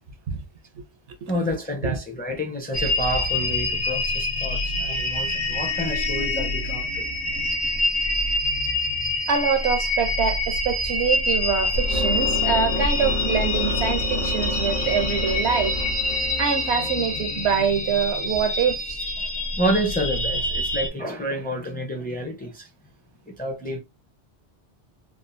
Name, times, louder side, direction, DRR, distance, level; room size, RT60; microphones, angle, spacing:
voice 1, 1.3-7.1 19.4-22.7 23.3-23.8, equal, 10° left, 0.5 m, -29 dB
sound 1, 2.7-20.9, left 2 dB, 65° left, 1.1 m, -26 dB
voice 2, 9.3-15.8 16.4-19.0, right 6 dB, 75° right, 1.0 m, -25 dB
sound 2, 11.7-17.8, left 1 dB, 50° left, 0.9 m, -29 dB
3.6 x 2.3 x 2.5 m
omnidirectional pair, 1.1 m